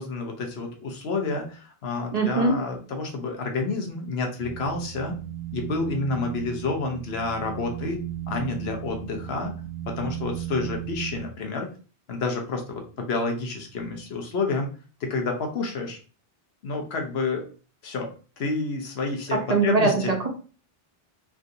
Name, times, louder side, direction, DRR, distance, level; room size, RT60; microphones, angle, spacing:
voice 1, 0.0-5.2 5.5-8.0 8.3-9.5 10.0-11.7 12.1-14.7 15.0-16.0 16.6-17.5 17.8-18.1 18.4-20.1, left 3 dB, 85° left, 3 dB, 1.1 m, -29 dB
voice 2, 2.1-2.6 19.3-20.3, right 3 dB, 45° right, 2 dB, 0.7 m, -22 dB
sound 1, 4.4-11.2, right 12 dB, 5° right, 0.7 m, -36 dB
3.5 x 2.5 x 2.6 m, 0.37 s
omnidirectional pair, 1.0 m